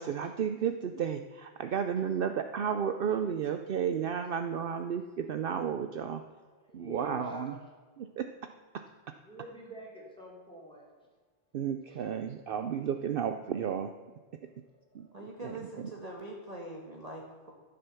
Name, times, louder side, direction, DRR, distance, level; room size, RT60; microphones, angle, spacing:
voice 1, 0.0-6.2 6.7-7.5 8.0-9.1 11.5-13.9 14.9-15.1 15.4-15.5, right 8 dB, 60° right, 8 dB, 0.8 m, -33 dB
voice 2, 2.1-2.4 4.2-4.3 4.7-4.8 6.3-7.7 9.2-10.8 11.9-12.1 14.4-15.1, equal, 5° left, -3 dB, 3.5 m, -48 dB
voice 3, 15.1-17.5, right 1 dB, 35° right, -1 dB, 1.6 m, -43 dB
13.5 x 7.8 x 6.9 m, 1.4 s
omnidirectional pair, 1.1 m